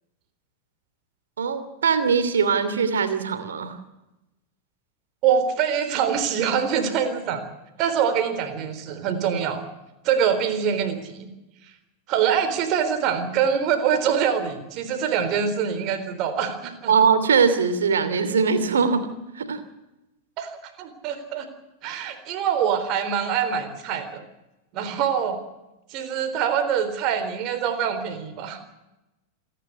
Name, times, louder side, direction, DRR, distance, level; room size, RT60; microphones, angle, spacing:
voice 1, 1.4-3.8 16.9-19.6, right 6 dB, 65° right, 11 dB, 2.8 m, -21 dB
voice 2, 5.2-7.4 7.8-9.6 10.0-11.3 12.1-16.9 20.4-21.5 21.8-24.2 24.7-25.4 25.9-28.6, right 8 dB, 40° right, 8 dB, 3.8 m, -24 dB
27.5 x 11.0 x 9.7 m, 0.97 s
figure-of-eight pair, 90°, 0 cm